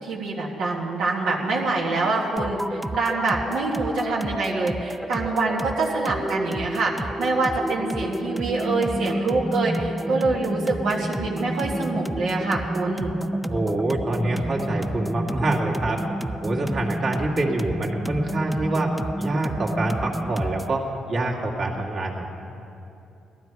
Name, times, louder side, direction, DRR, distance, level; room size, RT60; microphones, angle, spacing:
voice 1, 0.0-13.2, right 3 dB, 80° right, -4 dB, 1.8 m, -25 dB
sound 1, 2.4-20.8, right 1 dB, 5° right, 0.4 m, -30 dB
voice 2, 13.5-16.0 16.4-22.3, right 2 dB, 50° right, -2 dB, 2.1 m, -26 dB
18.0 x 12.5 x 4.7 m, 2.8 s
cardioid pair, 90°, 0 cm